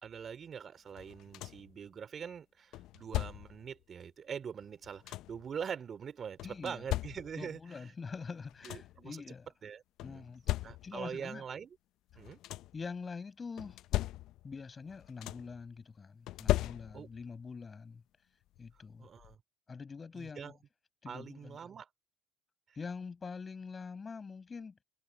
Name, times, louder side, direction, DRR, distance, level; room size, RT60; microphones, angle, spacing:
voice 1, 0.0-7.9 8.6-9.2 9.6-10.2 10.6-11.8 12.1-12.4 16.9-17.1 19.0-19.4 20.1-20.5 21.0-21.9 22.7-22.8, right 7 dB, 40° right, 2.9 m, -43 dB
sound 1, 1.0-1.8 2.7-3.7 4.6-5.5 6.4-7.6 8.2-8.3 8.5-9.1 10.0-11.1 12.1-12.9 13.6-14.6 14.9-15.6 16.3-17.3 18.6-18.7 19.2-19.4, left 16 dB, 65° left, 0.5 m, -37 dB
voice 2, 6.4-6.8 7.4-9.5 10.0-10.4 10.8-11.4 12.7-13.8 14.4-18.0 18.6-19.1 19.7-20.6 21.0-21.6 22.8-24.8, left 5 dB, 30° left, 5.5 m, -44 dB
supercardioid pair, 85°, 0 cm